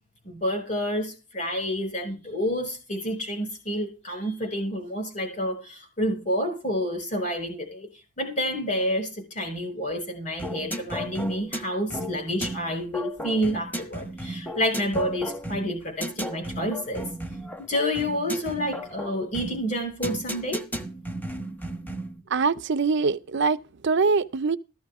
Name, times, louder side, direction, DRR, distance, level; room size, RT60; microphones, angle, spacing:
voice 1, 0.2-7.9 8.2-17.1 17.7-20.6, equal, 35° left, 6.0 m, -29 dB
sound 1, 10.4-22.2, equal, 10° left, 1.2 m, -34 dB
voice 2, 22.3-24.6, right 4 dB, 55° right, 0.6 m, -23 dB
14.5 x 13.5 x 3.6 m
head